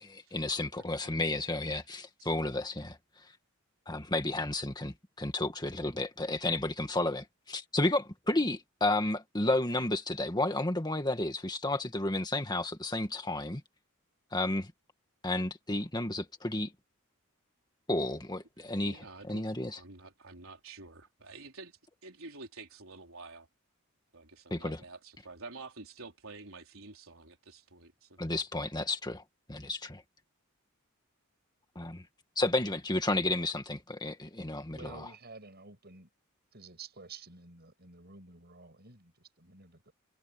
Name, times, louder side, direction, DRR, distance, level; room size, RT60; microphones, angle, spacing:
voice 1, 0.3-3.0 3.9-13.6 14.3-14.7 15.2-16.7 17.9-19.8 24.5-24.8 28.2-29.2 29.5-30.0 31.8-32.0 32.4-35.1, left 2 dB, 20° left, 1.9 m, -32 dB
voice 2, 1.0-1.4 2.2-2.3 18.8-19.4 19.8-23.5 24.1-28.2, right 3 dB, 70° right, 4.6 m, -49 dB
voice 3, 34.7-36.1 36.5-39.9, right 4 dB, 50° right, 8.0 m, -51 dB
head